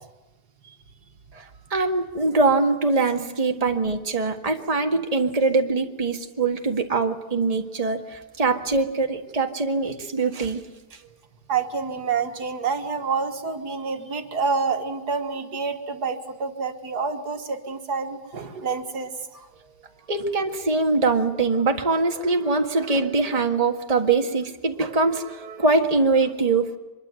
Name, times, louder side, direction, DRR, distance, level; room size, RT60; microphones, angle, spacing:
voice 1, 1.3-10.6 20.1-26.7, right 3 dB, 25° right, 3 dB, 1.7 m, -23 dB
voice 2, 11.5-19.5, right 5 dB, 70° right, 6 dB, 2.1 m, -28 dB
24.5 x 22.0 x 7.8 m, 1.1 s
omnidirectional pair, 1.8 m